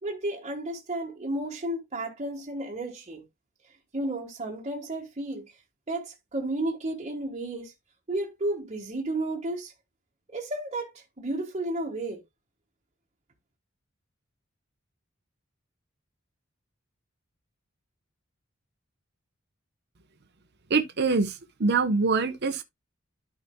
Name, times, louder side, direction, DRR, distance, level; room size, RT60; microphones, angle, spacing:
voice 1, 0.0-3.2 3.9-5.5 5.9-7.7 8.1-9.7 10.3-12.2, right 1 dB, 35° right, 1.4 m, -32 dB
voice 2, 20.7-21.3 21.6-22.6, right 4 dB, 55° right, 0.9 m, -24 dB
12.5 x 5.0 x 2.2 m
head